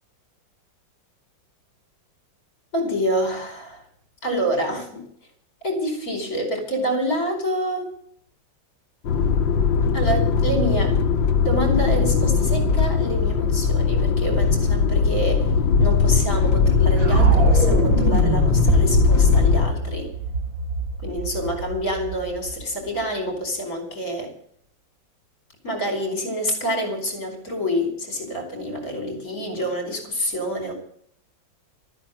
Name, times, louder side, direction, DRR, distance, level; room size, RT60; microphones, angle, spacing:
voice 1, 2.7-3.8 4.2-5.0 5.6-7.9 9.9-11.0 11.4-15.5 15.8-20.1 21.0-24.3 25.6-30.7, equal, 50° left, 3 dB, 5.4 m, -27 dB
sound 1, 9.0-19.7, left 5 dB, 90° left, 2.0 m, -19 dB
sound 2, 17.0-23.0, right 4 dB, 90° right, 3.0 m, -24 dB
14.0 x 9.7 x 9.3 m, 0.65 s
omnidirectional pair, 2.1 m